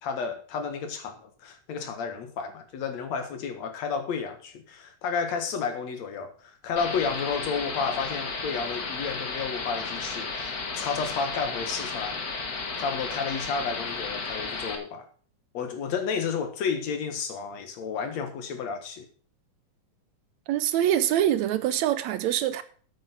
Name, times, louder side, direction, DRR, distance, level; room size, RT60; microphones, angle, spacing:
voice 1, 0.0-12.2 12.8-15.1 15.5-19.1, left 5 dB, 65° left, 2.6 m, -31 dB
sound 1, 6.8-14.8, left 4 dB, 40° left, 1.4 m, -33 dB
voice 2, 20.5-22.6, right 11 dB, 75° right, 1.9 m, -24 dB
8.8 x 8.6 x 5.9 m
omnidirectional pair, 3.5 m